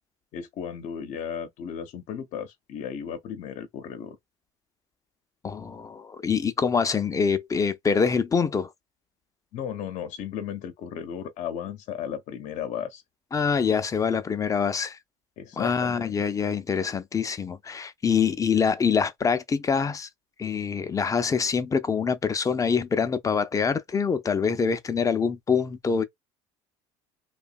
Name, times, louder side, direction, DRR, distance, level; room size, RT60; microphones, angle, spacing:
voice 1, 0.3-4.2 9.5-13.0 15.4-16.2, left 8 dB, 55° left, 0.8 m, -35 dB
voice 2, 5.4-8.7 13.3-15.0 15.6-20.1 20.4-26.0, left 6 dB, 25° left, 0.5 m, -25 dB
2.7 x 2.3 x 2.3 m
supercardioid pair, 95°, 14 cm